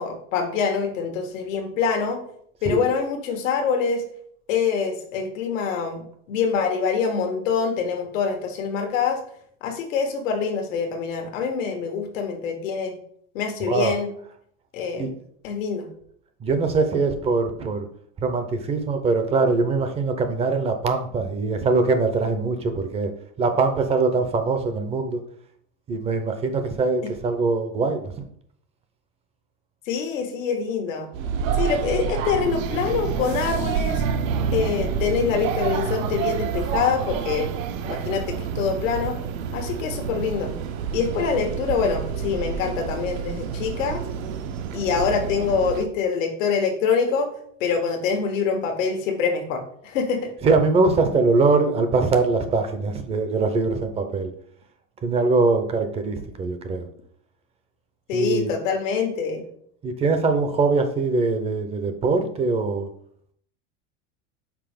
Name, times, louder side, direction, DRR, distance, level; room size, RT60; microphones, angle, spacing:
voice 1, 0.0-2.2 2.6-4.0 4.5-9.2 9.6-13.0 13.3-14.1 14.7-15.1 15.4-15.9 27.0-27.1 29.9-31.1 31.5-34.0 34.5-37.6 37.8-39.2 39.5-40.5 40.9-44.0 44.7-47.3 47.6-50.3 58.1-59.5, left 6 dB, 90° left, 4 dB, 1.4 m, -25 dB
voice 2, 16.4-17.9 18.2-23.1 23.4-25.2 25.9-28.1 50.4-54.3 55.0-56.9 58.1-58.5 59.8-62.9, right 3 dB, 15° right, 8 dB, 0.5 m, -22 dB
sound 1, 31.1-45.8, right 7 dB, 85° right, 0.9 m, -28 dB
5.9 x 4.4 x 4.9 m, 0.65 s
supercardioid pair, 155°, 38 cm